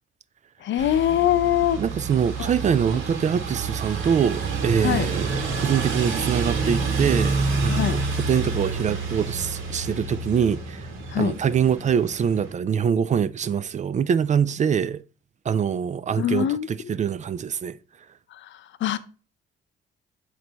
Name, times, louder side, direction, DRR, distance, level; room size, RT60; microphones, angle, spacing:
voice 1, 0.6-1.8 2.4-2.5 4.8-5.1 7.7-8.0 11.1-11.3 16.2-16.9 18.4-18.5 18.8-19.0, left 11 dB, 70° left, 0.6 m, -23 dB
sound 1, 0.8-12.5, right 4 dB, 85° right, 1.6 m, -28 dB
voice 2, 1.8-10.9 11.2-15.0 15.5-17.8, right 7 dB, 40° right, 0.4 m, -24 dB
8.0 x 3.2 x 4.0 m
cardioid pair, 90°, 20 cm